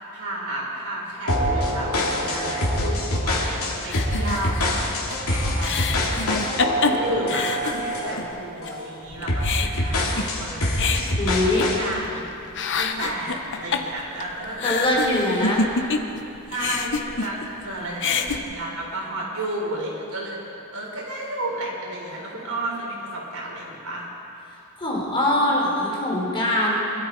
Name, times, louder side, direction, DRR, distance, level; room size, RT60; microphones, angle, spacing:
voice 1, 0.0-4.7 5.0-12.2 12.8-15.5 16.5-24.1, right 1 dB, 70° right, -3 dB, 4.0 m, -33 dB
sound 1, 1.3-8.2 8.6-8.9 9.3-11.9, left 1 dB, 75° left, 2.8 m, -25 dB
sound 2, 3.9-8.3 8.6-8.7 9.1-12.2 12.5-16.2 16.5-17.6 17.9-18.4, left 4 dB, 55° left, 0.9 m, -27 dB
voice 2, 11.2-11.6 14.6-15.7 24.8-26.7, left 1 dB, 25° left, -3 dB, 3.5 m, -22 dB
24.0 x 12.5 x 4.6 m, 2.9 s
head